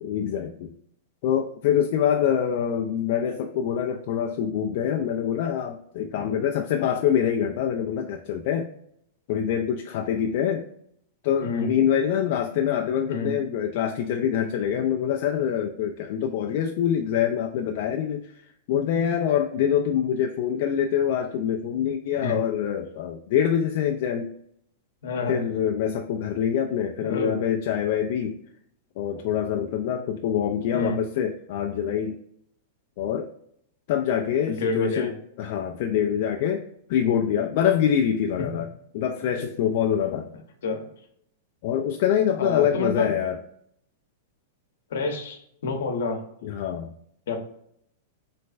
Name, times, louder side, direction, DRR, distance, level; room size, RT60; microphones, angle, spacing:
voice 1, 0.0-0.7 1.2-8.7 9.3-10.7 11.2-24.3 25.3-28.4 29.0-32.2 33.0-33.3 33.9-36.6 36.9-38.7 38.9-40.3 41.6-43.4 46.4-46.9, left 9 dB, 55° left, 3 dB, 0.3 m, -25 dB
voice 2, 11.4-11.7 13.1-13.3 22.2-22.4 25.0-25.4 27.0-27.4 30.7-31.0 34.5-35.1 38.4-38.5 40.6-40.8 42.4-43.1 44.9-46.2 47.3-47.4, left 3 dB, 75° left, 4 dB, 0.8 m, -28 dB
3.3 x 3.1 x 2.4 m, 0.69 s
hypercardioid pair, 135°, 0 cm